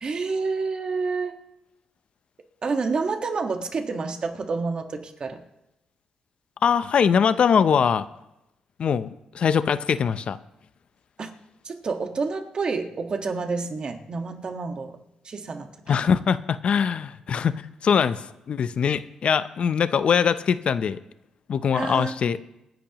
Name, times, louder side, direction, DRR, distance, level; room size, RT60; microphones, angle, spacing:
voice 1, 0.0-1.4 2.6-5.4 11.2-11.3 11.6-15.0 15.2-15.7 21.7-22.1, right 4 dB, 45° right, 4 dB, 1.6 m, -28 dB
voice 2, 6.6-8.0 8.8-10.4 15.9-21.0 21.5-22.4, left 7 dB, 55° left, 14 dB, 0.6 m, -22 dB
26.5 x 10.5 x 3.0 m, 0.91 s
cardioid pair, 90°, 2 cm